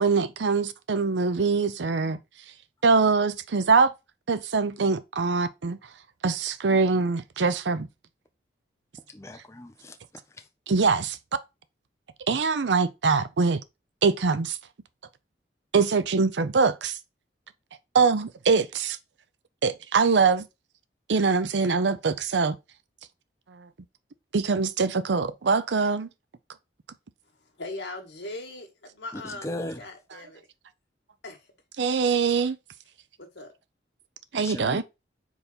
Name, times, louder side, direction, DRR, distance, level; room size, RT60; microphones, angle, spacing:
voice 1, 0.0-2.2 2.8-3.9 4.3-5.8 6.2-7.9 10.7-11.2 12.3-13.6 14.0-14.6 15.7-17.0 17.9-19.0 19.6-20.4 21.1-22.6 23.5-23.7 24.3-26.1 31.8-32.6 34.3-34.8, right 4 dB, 75° right, 0.6 m, -23 dB
voice 2, 9.1-10.0 29.1-29.8 34.3-34.8, left 1 dB, 15° left, 0.6 m, -37 dB
voice 3, 27.6-29.5 29.8-30.5 31.2-31.5 33.2-33.5, left 2 dB, 75° left, 1.8 m, -39 dB
4.8 x 4.0 x 5.1 m
head